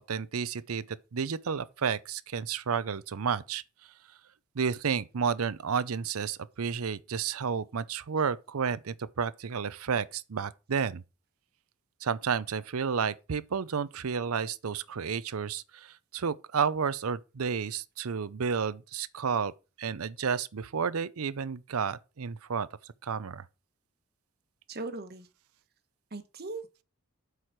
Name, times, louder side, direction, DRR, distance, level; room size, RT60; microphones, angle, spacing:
voice 1, 0.1-3.6 4.6-11.0 12.0-19.5 19.8-22.7 23.0-23.4, right 6 dB, 80° right, 0.6 m, -31 dB
voice 2, 24.7-25.3 26.1-26.8, right 3 dB, 45° right, 1.2 m, -39 dB
7.9 x 4.9 x 5.9 m
head